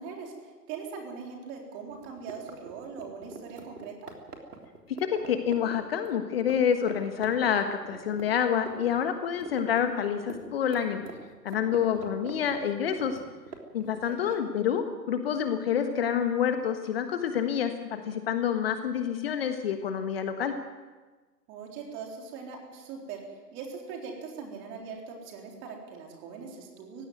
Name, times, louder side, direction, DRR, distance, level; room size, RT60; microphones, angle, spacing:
voice 1, 0.0-3.9 14.1-14.4 21.5-27.0, right 5 dB, 25° right, 1 dB, 3.9 m, -41 dB
sound 1, 1.9-6.6 6.9-7.0 7.2-9.0 9.2-14.0, right 5 dB, 65° right, 3.7 m, -43 dB
voice 2, 5.0-11.0 11.4-13.2 13.7-20.5, left 8 dB, 35° left, 8 dB, 1.4 m, -28 dB
19.0 x 16.5 x 9.4 m, 1.3 s
figure-of-eight pair, 135°, 49 cm